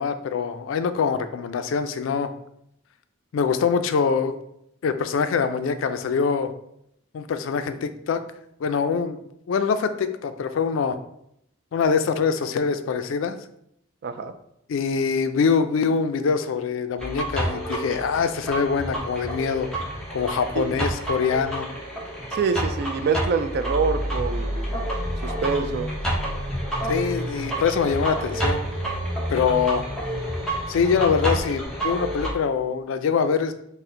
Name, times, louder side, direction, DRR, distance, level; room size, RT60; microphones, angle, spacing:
voice 1, 0.0-2.3 3.3-4.4 4.8-6.5 7.1-8.2 8.6-9.2 9.5-11.0 11.7-13.4 14.7-19.7 20.1-21.7 26.9-28.6 29.3-29.9 30.7-33.5, left 6 dB, 75° left, 10 dB, 0.3 m, -24 dB
voice 2, 14.0-14.3 20.5-20.7 22.3-24.8 25.2-25.9, right 5 dB, 55° right, 9 dB, 0.3 m, -25 dB
sound 1, 17.0-32.3, right 1 dB, 5° left, 0.8 m, -29 dB
4.3 x 2.1 x 3.7 m, 0.74 s
head